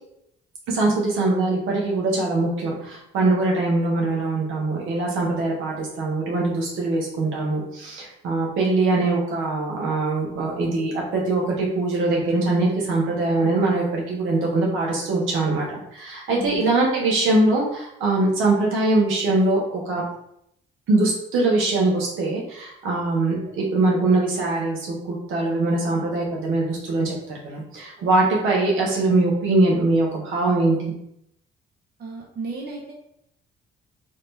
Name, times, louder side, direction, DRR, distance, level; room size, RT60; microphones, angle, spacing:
voice 1, 0.7-20.0 20.9-30.9, right 2 dB, 85° right, -3 dB, 1.3 m, -22 dB
voice 2, 32.0-32.9, right 4 dB, 55° right, -2 dB, 0.8 m, -34 dB
4.0 x 2.7 x 3.4 m, 0.77 s
cardioid pair, 90°, 20 cm